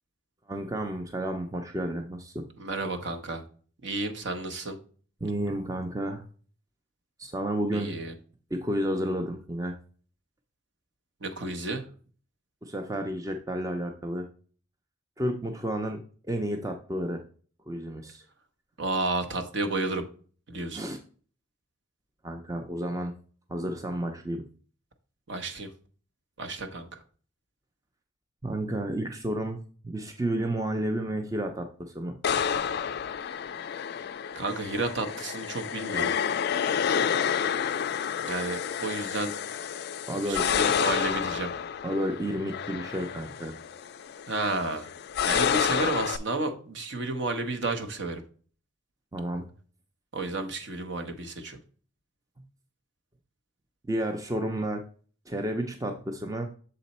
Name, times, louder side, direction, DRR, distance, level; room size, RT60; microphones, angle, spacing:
voice 1, 0.5-2.5 5.2-6.2 7.2-8.0 8.5-9.7 12.6-14.3 15.2-16.0 16.3-17.2 17.7-18.2 20.7-21.0 22.2-23.1 23.5-24.4 28.4-32.1 40.1-40.5 41.8-43.6 49.1-49.4 53.9-54.8 55.3-56.5, right 1 dB, 15° right, 4 dB, 0.4 m, -31 dB
voice 2, 2.6-3.4 3.8-4.8 7.7-8.1 11.2-11.8 18.8-20.0 20.5-20.8 25.3-25.7 26.4-27.0 34.3-36.1 38.2-39.3 40.2-41.5 44.3-44.9 45.2-48.2 50.1-51.6, right 2 dB, 55° right, 6 dB, 0.8 m, -31 dB
sound 1, 32.2-46.2, left 7 dB, 50° left, 0.3 m, -29 dB
6.7 x 4.0 x 4.1 m, 0.42 s
head